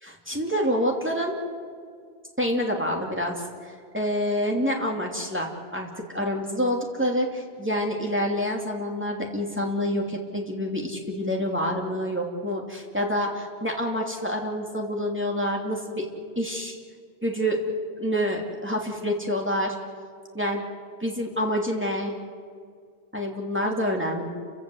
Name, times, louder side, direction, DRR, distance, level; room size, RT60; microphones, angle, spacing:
voice 1, 0.0-1.3 2.4-3.4 3.6-5.9 6.1-16.1 16.4-16.7 17.2-17.6 18.0-19.8 20.3-20.7 21.0-22.1 23.1-24.3, equal, 10° right, 0 dB, 2.9 m, -27 dB
29.5 x 16.5 x 8.0 m, 2.1 s
omnidirectional pair, 1.1 m